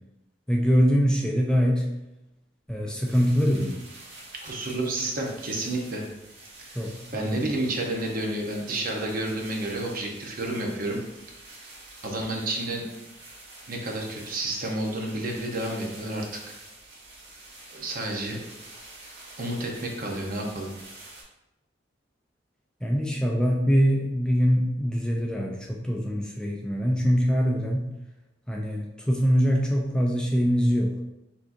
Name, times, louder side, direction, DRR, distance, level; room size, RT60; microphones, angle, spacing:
voice 1, 0.5-1.9 2.7-3.8 6.8-7.4 22.8-27.9 28.5-31.0, equal, 5° left, -1 dB, 0.4 m, -23 dB
sound 1, 3.0-21.2, right 2 dB, 65° right, 1.3 m, -47 dB
voice 2, 4.4-6.0 6.6-6.8 7.1-11.0 11.5-11.6 12.0-12.8 13.7-16.5 17.7-18.5 19.4-20.7, right 1 dB, 50° right, 0 dB, 0.8 m, -30 dB
5.9 x 2.9 x 2.5 m, 0.94 s
head